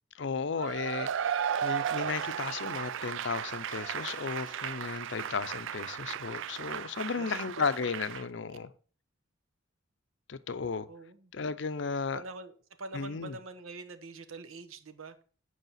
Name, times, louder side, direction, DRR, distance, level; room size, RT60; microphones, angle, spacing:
voice 1, 0.1-8.7 10.3-10.9 11.3-12.2 12.9-13.4, left 5 dB, 60° left, 0.5 m, -34 dB
Cheering / Applause / Crowd, 0.6-8.2, right 8 dB, 65° right, 0.4 m, -35 dB
voice 2, 7.1-7.7 10.9-11.3 12.1-15.2, right 3 dB, 85° right, 0.9 m, -45 dB
8.1 x 4.9 x 5.6 m
head